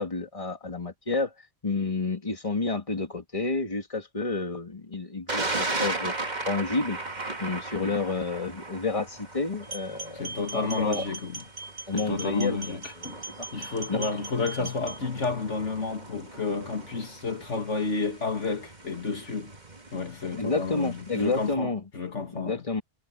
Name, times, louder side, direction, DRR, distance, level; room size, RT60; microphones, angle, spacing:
voice 1, 0.0-1.3 1.6-6.1 6.5-7.0 7.4-11.1 11.9-12.8 13.4-14.1 14.6-14.7 20.3-21.8 22.3-22.8, left 3 dB, 25° left, 2.5 m, -30 dB
Thunder, 5.3-21.5, right 3 dB, 35° right, 2.0 m, -38 dB
sound 1, 9.6-15.0, right 2 dB, 85° right, 3.3 m, -40 dB
voice 2, 10.1-11.4 11.9-13.2 13.5-19.5 19.9-22.6, left 4 dB, 75° left, 2.5 m, -31 dB
omnidirectional pair, 1.2 m